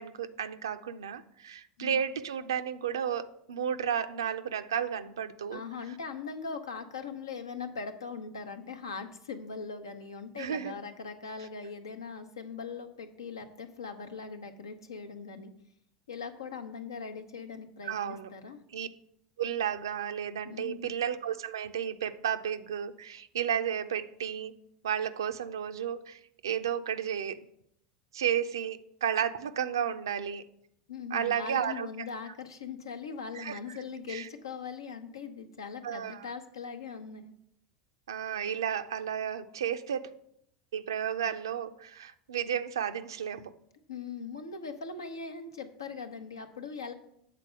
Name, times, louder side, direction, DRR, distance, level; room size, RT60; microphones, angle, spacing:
voice 1, 0.0-5.6 10.4-10.8 17.8-18.3 18.7-18.9 19.4-24.5 24.8-27.4 28.1-30.4 31.1-31.9 33.3-33.6 34.1-34.3 35.8-36.3 38.1-40.1 40.7-43.5, right 8 dB, 85° right, 11 dB, 0.4 m, -32 dB
voice 2, 5.5-15.5 16.1-18.6 20.4-20.9 30.9-37.3 43.9-46.9, left 5 dB, 90° left, 7 dB, 0.7 m, -40 dB
7.6 x 4.0 x 6.1 m, 0.74 s
hypercardioid pair, 85°, 2 cm